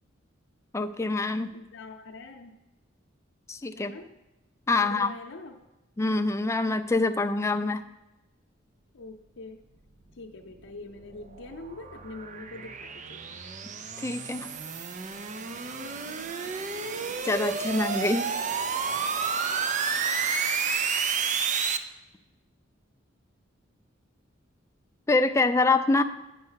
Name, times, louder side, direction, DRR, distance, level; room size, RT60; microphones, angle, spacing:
voice 1, 0.7-1.5 3.5-3.9 4.7-5.1 6.0-7.8 14.0-14.5 17.2-18.3 20.7-21.1 25.1-26.0, left 3 dB, 15° left, 8 dB, 0.4 m, -25 dB
voice 2, 1.5-2.6 3.7-4.1 4.8-5.6 8.9-9.7 10.2-13.2 15.7-16.2, left 2 dB, 70° left, 0 dB, 0.7 m, -44 dB
sound 1, 10.5-21.8, right 6 dB, 40° right, 0.5 m, -31 dB
8.7 x 5.4 x 5.7 m, 1.0 s
head